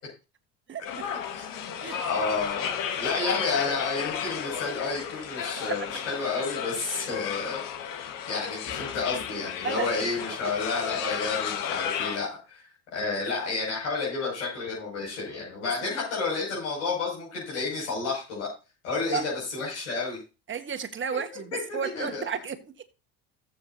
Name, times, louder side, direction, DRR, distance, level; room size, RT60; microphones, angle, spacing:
voice 1, 0.7-1.2 1.8-2.0 5.7-5.9 6.9-7.0 9.6-9.9 15.6-15.7 19.1-19.2 20.5-22.9, right 6 dB, 35° right, 1.4 m, -33 dB
sound 1, 0.8-12.2, left 8 dB, 70° left, 1.6 m, -33 dB
voice 2, 2.0-7.6 8.3-18.5 18.8-20.2 21.9-22.2, left 4 dB, 90° left, 6.1 m, -30 dB
16.5 x 7.3 x 2.7 m
supercardioid pair, 80°, 35 cm